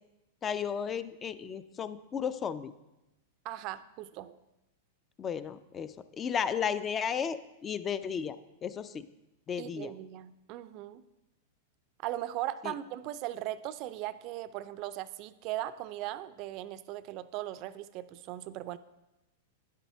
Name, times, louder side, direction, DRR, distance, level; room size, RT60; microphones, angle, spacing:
voice 1, 0.4-2.7 5.2-8.4 8.6-9.1 9.5-9.9 12.6-12.7, left 7 dB, 25° left, 14 dB, 0.4 m, -34 dB
voice 2, 3.4-4.4 9.6-11.0 12.0-18.8, right 14 dB, 45° right, 14 dB, 0.4 m, -38 dB
9.9 x 8.4 x 3.4 m, 0.96 s
hypercardioid pair, 115°, 0 cm